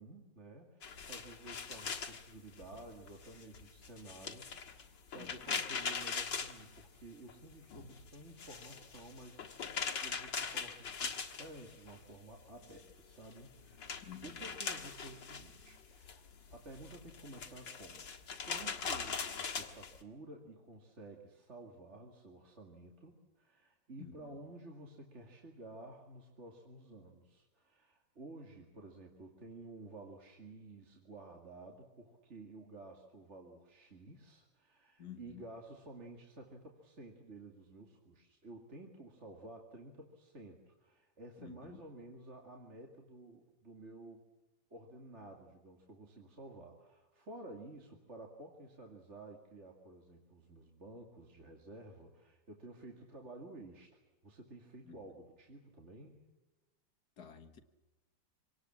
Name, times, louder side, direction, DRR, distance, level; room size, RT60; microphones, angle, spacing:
voice 1, 0.0-9.4 10.0-18.0 18.5-44.2 44.7-53.9 54.2-56.2, right 2 dB, 40° right, 2.5 m, -52 dB
sound 1, 0.8-7.3 7.6-12.0 12.3-20.0, left 6 dB, 75° left, 2.4 m, -42 dB
voice 2, 5.2-5.5 14.0-14.5 24.0-24.4 35.0-35.4 41.4-41.8 54.9-55.0 57.2-57.6, left 9 dB, 60° left, 2.0 m, -52 dB
26.0 x 19.0 x 7.4 m
omnidirectional pair, 2.0 m